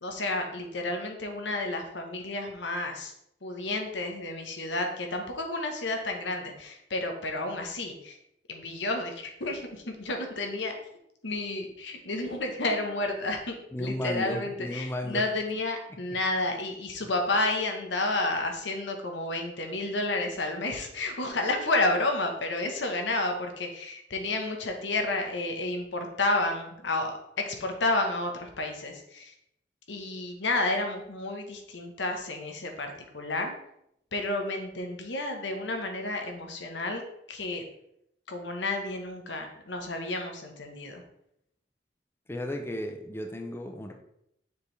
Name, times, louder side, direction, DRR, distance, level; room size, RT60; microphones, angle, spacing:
voice 1, 0.0-3.1 3.4-8.2 8.5-10.7 11.2-29.3 29.9-33.5 34.1-37.0 37.3-37.6 38.3-41.0, left 2 dB, 80° left, 4 dB, 1.2 m, -31 dB
voice 2, 13.7-15.2 42.3-43.9, left 1 dB, 15° left, 4 dB, 0.6 m, -34 dB
6.8 x 5.1 x 3.3 m, 0.76 s
head